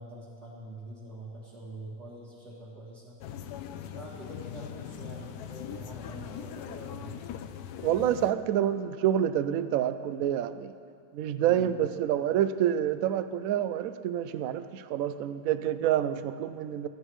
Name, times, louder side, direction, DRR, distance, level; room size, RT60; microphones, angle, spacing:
voice 1, 0.0-3.5 3.9-7.1 11.4-11.8, right 1 dB, 60° right, -10 dB, 2.8 m, -45 dB
sound 1, 3.2-8.3, left 9 dB, 70° left, 1.0 m, -40 dB
voice 2, 7.8-10.7 11.1-16.9, right 10 dB, 75° right, 12 dB, 0.8 m, -28 dB
19.5 x 13.5 x 3.2 m, 2.3 s
omnidirectional pair, 1.9 m